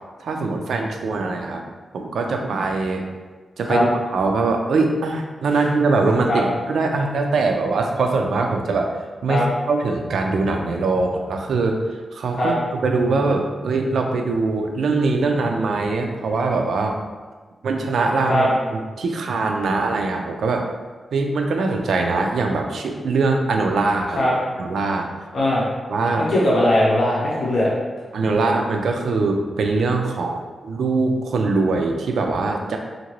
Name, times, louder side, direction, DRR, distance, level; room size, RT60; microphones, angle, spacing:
voice 1, 0.2-1.6 1.9-3.0 3.6-9.0 9.2-11.8 12.1-17.0 17.6-20.7 21.1-24.3 24.6-25.1 25.9-26.3 28.1-32.8, right 3 dB, 85° right, 3 dB, 0.3 m, -22 dB
voice 2, 25.3-25.7 26.3-27.7, left 1 dB, 55° left, -6 dB, 0.9 m, -19 dB
2.8 x 2.5 x 3.0 m, 1.4 s
wide cardioid pair, 170°, 0 cm